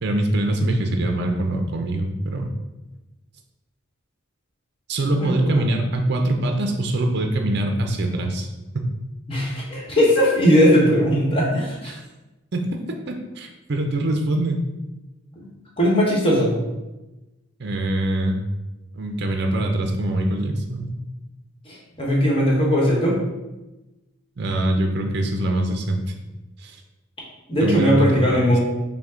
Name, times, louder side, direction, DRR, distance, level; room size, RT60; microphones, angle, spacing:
voice 1, 0.0-2.5 4.9-8.5 11.9-12.0 12.5-12.6 13.1-14.7 17.6-18.4 18.9-20.9 24.4-26.0 26.6-26.8 27.6-28.4, right 1 dB, 55° right, 3 dB, 0.5 m, -23 dB
voice 2, 5.2-5.6 9.3-11.9 15.8-16.5 21.6-23.1 27.5-28.6, equal, 25° left, -4 dB, 1.1 m, -19 dB
5.7 x 2.1 x 3.6 m, 1.0 s
head